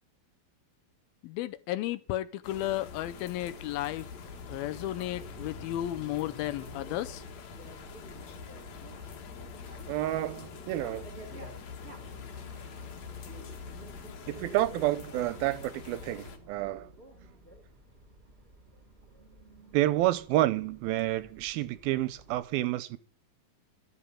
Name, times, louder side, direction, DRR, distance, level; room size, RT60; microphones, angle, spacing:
voice 1, 1.2-4.1 4.5-7.2, left 14 dB, 80° left, 2.5 m, -33 dB
sound 1, 2.4-16.4, left 6 dB, 55° left, 2.5 m, -45 dB
Bicycle, 4.2-22.4, right 2 dB, 15° right, 2.8 m, -52 dB
voice 2, 9.9-11.1 14.3-16.9 19.7-23.0, right 15 dB, 80° right, 2.5 m, -29 dB
13.0 x 7.8 x 7.4 m
omnidirectional pair, 4.4 m